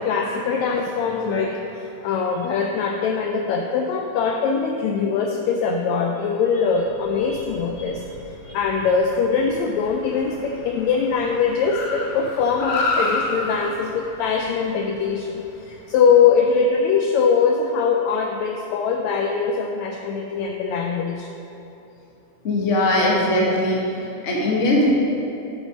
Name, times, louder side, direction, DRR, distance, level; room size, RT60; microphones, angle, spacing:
voice 1, 0.0-8.0 8.5-21.3, left 5 dB, 90° left, 3 dB, 1.5 m, -22 dB
Car, 6.8-16.4, left 3 dB, 65° left, 1.9 m, -32 dB
voice 2, 22.4-24.9, left 1 dB, 45° left, -3 dB, 0.9 m, -20 dB
10.5 x 6.1 x 5.3 m, 2.9 s
omnidirectional pair, 3.8 m